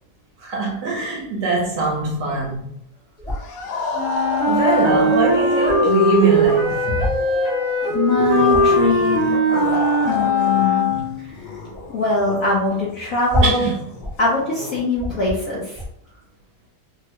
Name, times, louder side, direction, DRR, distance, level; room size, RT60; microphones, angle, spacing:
voice 1, 0.4-2.7 4.5-7.1 10.9-11.1 13.4-13.7, right 3 dB, 65° right, 1.2 m, -22 dB
sound 1, 3.2-3.6 4.8-4.9 5.1-5.2 5.4-5.8 6.9-7.3 7.8-7.9 8.2-8.8 10.1-10.3 11.0-11.3 11.6-11.9 12.3-12.4 12.6-12.7 13.3-14.2 14.6-14.7 14.9-15.4 15.7-15.9, equal, 5° left, 0.7 m, -26 dB
sound 2, 3.3-10.7 10.9-14.8, left 2 dB, 90° left, 1.4 m, -29 dB
Wind instrument woodwind instrument, 3.9-11.3, equal, 50° right, 0.8 m, -19 dB
voice 2, 7.9-9.4 10.0-10.9 11.2-11.4 11.9-13.7 14.2-15.8, left 3 dB, 65° left, 0.8 m, -22 dB
3.5 x 2.1 x 2.9 m
omnidirectional pair, 2.2 m